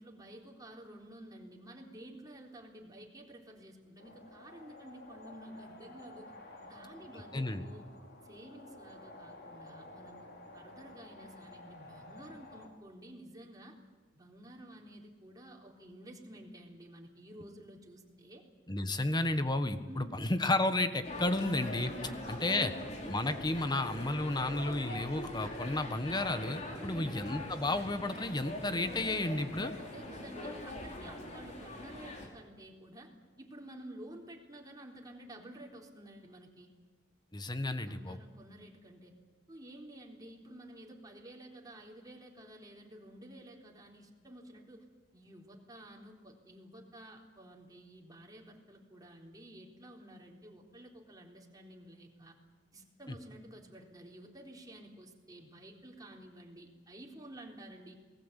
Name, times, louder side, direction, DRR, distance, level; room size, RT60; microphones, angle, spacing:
voice 1, 0.0-6.3 6.6-7.9 8.2-10.3 10.5-13.8 14.1-18.4 18.9-19.0 19.9-20.2 22.0-22.9 26.7-27.2 29.7-36.7 37.8-39.1 39.5-44.9 45.1-52.4 52.7-58.0, right 1 dB, 20° right, 0 dB, 3.9 m, -52 dB
sound 1, 4.0-12.7, left 2 dB, 60° left, 4.0 m, -52 dB
voice 2, 7.3-7.6 18.7-21.9 22.3-22.7 23.1-29.7 37.3-38.2, left 2 dB, 25° left, 10 dB, 1.5 m, -32 dB
sound 2, 21.0-32.3, left 1 dB, 40° left, 4.8 m, -42 dB
28.0 x 20.0 x 8.3 m, 1.4 s
head